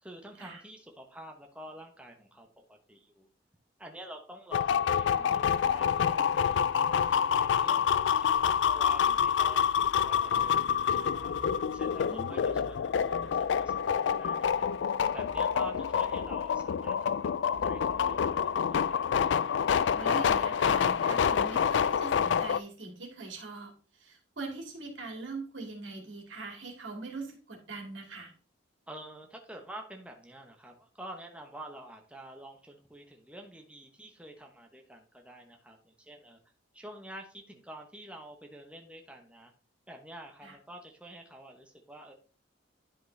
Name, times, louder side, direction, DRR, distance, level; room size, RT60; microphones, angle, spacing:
voice 1, 0.0-3.3 3.8-11.3 11.7-14.7 15.1-19.0 28.9-36.4 36.7-39.5 39.9-42.1, right 1 dB, 5° right, 2 dB, 1.0 m, -48 dB
sound 1, 4.5-22.6, left 7 dB, 70° left, 0.3 m, -27 dB
sound 2, 7.5-19.6, right 2 dB, 65° right, 1.2 m, -54 dB
voice 2, 12.1-12.6 19.8-23.7 24.0-28.3 40.4-40.5, right 3 dB, 85° right, 2 dB, 2.3 m, -42 dB
10.5 x 5.2 x 3.3 m, 0.38 s
head